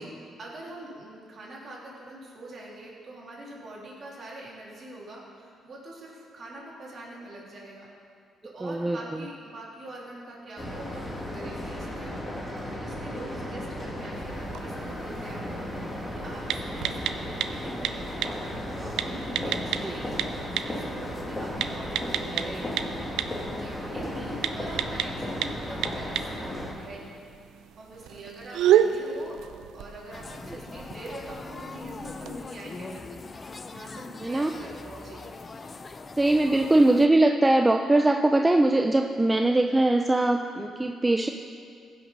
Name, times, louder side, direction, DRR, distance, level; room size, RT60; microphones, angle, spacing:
voice 1, 0.0-7.9 8.4-22.8 23.5-27.2 27.8-29.4 29.7-33.2 33.7-35.3, right 1 dB, 50° right, -4 dB, 3.0 m, -44 dB
voice 2, 8.6-9.0 19.8-19.9 22.3-22.5 34.2-34.5 36.2-41.3, right 2 dB, 15° right, 4 dB, 0.4 m, -21 dB
sound 1, 10.6-26.7, equal, 20° left, 2.3 m, -35 dB
sound 2, 14.1-32.4, right 9 dB, 85° right, 0.5 m, -32 dB
sound 3, 30.1-37.1, left 3 dB, 35° left, 0.5 m, -41 dB
15.5 x 6.1 x 5.4 m, 2.2 s
cardioid pair, 90°, 0 cm